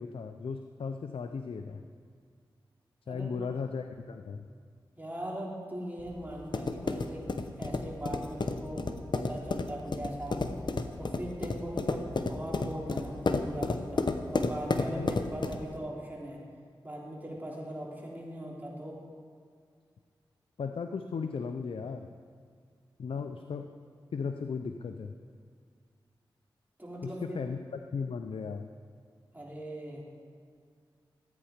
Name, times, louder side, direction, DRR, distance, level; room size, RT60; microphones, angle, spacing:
voice 1, 0.0-1.8 3.1-4.5 15.0-15.1 20.6-22.1 23.0-23.7 24.1-25.1 27.0-27.6 27.9-28.7, left 5 dB, 75° left, 7 dB, 0.5 m, -36 dB
voice 2, 5.0-8.9 9.1-10.4 11.0-16.4 16.8-19.0 23.1-23.2 26.8-27.4 29.3-30.0, right 1 dB, 20° right, -4 dB, 3.5 m, -40 dB
sound 1, 6.0-15.8, left 3 dB, 55° left, 0.8 m, -32 dB
14.0 x 8.9 x 5.1 m, 2.1 s
cardioid pair, 40°, 9 cm